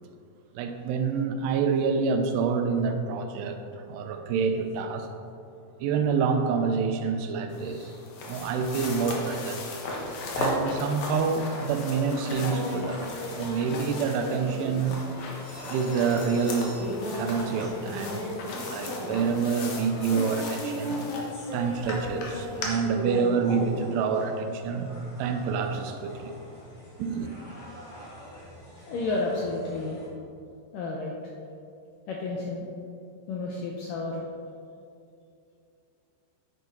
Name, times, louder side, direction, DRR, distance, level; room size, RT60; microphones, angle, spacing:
voice 1, 0.6-5.1 5.8-7.9 8.2-9.7 10.4-15.0 15.7-16.8 17.1-18.2 18.7-21.0 21.5-24.9 25.2-26.3 27.0-27.3, right 5 dB, 85° right, 6 dB, 2.8 m, -27 dB
sound 1, 7.5-22.7, left 2 dB, 60° left, 2.2 m, -37 dB
sound 2, 12.3-30.1, left 1 dB, 45° left, 3.8 m, -38 dB
sound 3, 21.7-21.9 22.5-22.8 23.6-24.1 24.7-25.2 25.8-26.7 27.3-28.3 28.9-29.2, right 1 dB, 45° right, 1.7 m, -51 dB
voice 2, 28.9-30.0 30.7-31.1 32.1-32.7 33.3-34.3, left 3 dB, 75° left, -2 dB, 2.0 m, -31 dB
9.6 x 9.4 x 3.9 m, 2.5 s
omnidirectional pair, 4.8 m